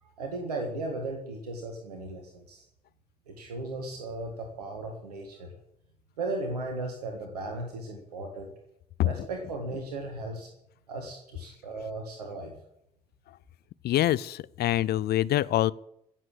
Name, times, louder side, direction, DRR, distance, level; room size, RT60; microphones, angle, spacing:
voice 1, 0.0-2.6 3.3-5.5 6.2-8.5 9.0-10.5 10.9-12.5, right 2 dB, 85° right, 3 dB, 1.6 m, -36 dB
voice 2, 13.8-15.7, left 14 dB, 55° left, 20 dB, 0.6 m, -25 dB
16.0 x 7.6 x 8.5 m, 0.78 s
figure-of-eight pair, 45°, 20 cm